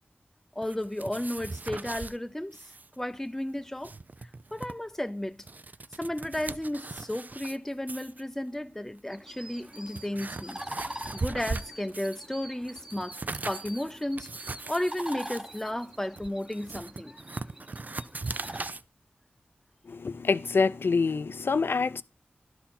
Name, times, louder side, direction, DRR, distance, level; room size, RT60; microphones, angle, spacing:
voice 1, 0.6-2.7 3.0-3.9 4.5-5.4 6.0-10.6 11.1-13.2 13.5-14.3 14.7-17.2, left 1 dB, 10° left, 0.5 m, -33 dB
sound 1, 0.6-2.2 2.5-2.9 3.1-3.2 3.6-4.7 5.3-7.6 7.9-8.2 9.0-9.1 9.6-12.3 12.6-18.8, right 3 dB, 50° right, 0.4 m, -39 dB
sound 2, 9.1-18.7, equal, 15° right, 1.0 m, -44 dB
voice 2, 19.9-22.0, left 4 dB, 75° left, 0.5 m, -26 dB
11.5 x 5.7 x 4.3 m
wide cardioid pair, 50°, 4 cm